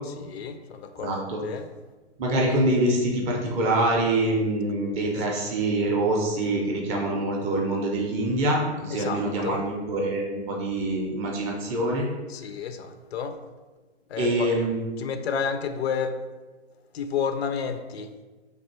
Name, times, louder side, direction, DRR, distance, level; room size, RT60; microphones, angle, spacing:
voice 1, 0.2-1.7 8.9-9.6 12.3-13.4 14.1-14.5 15.0-16.2 16.9-18.1, left 6 dB, 65° left, 8 dB, 0.5 m, -31 dB
voice 2, 1.0-1.4 2.2-12.1 14.2-15.0, right 1 dB, 20° right, -1 dB, 0.5 m, -25 dB
3.3 x 2.3 x 4.4 m, 1.2 s
hypercardioid pair, 120°, 34 cm